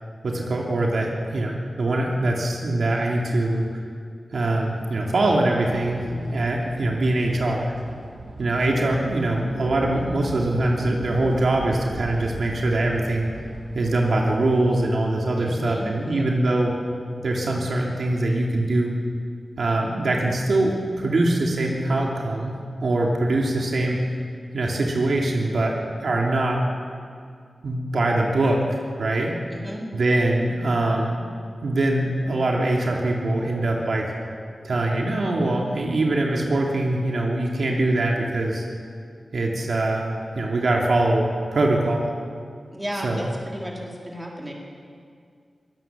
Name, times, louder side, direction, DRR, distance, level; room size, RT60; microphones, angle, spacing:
voice 1, 0.2-3.7 4.3-6.0 6.3-7.7 8.4-13.3 13.7-16.7 17.2-18.9 19.6-24.0 24.5-25.7 26.0-26.6 27.6-29.3 29.9-31.3 31.6-34.1 34.6-38.6 39.3-42.1 43.0-43.3, right 2 dB, 70° right, -1 dB, 3.0 m, -23 dB
sound 1, 5.6-15.1, right 2 dB, 50° right, 2.6 m, -39 dB
voice 2, 15.4-16.2 29.5-29.8 42.7-44.5, equal, 10° right, -2 dB, 4.4 m, -34 dB
23.0 x 18.0 x 7.6 m, 2.2 s
wide cardioid pair, 115°, 0 cm